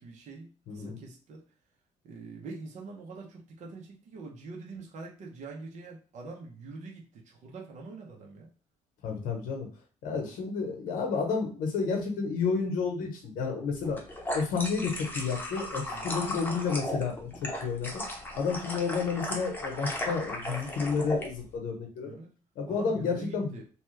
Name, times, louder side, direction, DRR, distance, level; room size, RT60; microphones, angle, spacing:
voice 1, 0.0-1.4 2.0-8.5 15.9-16.2 22.0-22.3 22.7-23.6, right 3 dB, 60° right, 0 dB, 0.8 m, -44 dB
voice 2, 0.7-1.0 9.0-9.7 10.0-14.0 14.3-18.0 18.4-22.2 22.6-23.6, left 5 dB, 80° left, 2 dB, 0.9 m, -31 dB
sound 1, 13.8-21.3, left 1 dB, 15° left, 0.8 m, -36 dB
2.9 x 2.3 x 3.2 m, 0.37 s
cardioid pair, 105°, 14 cm